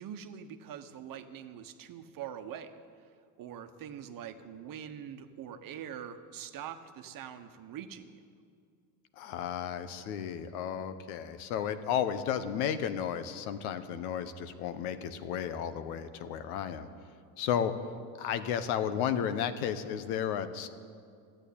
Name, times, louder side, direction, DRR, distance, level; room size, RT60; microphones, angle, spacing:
voice 1, 0.0-2.7 3.4-8.2, right 9 dB, 50° right, 8 dB, 1.1 m, -43 dB
voice 2, 9.2-16.9 17.4-17.7 18.2-20.7, left 9 dB, 80° left, 11 dB, 1.0 m, -33 dB
13.0 x 9.0 x 8.6 m, 2.3 s
supercardioid pair, 90°, 43 cm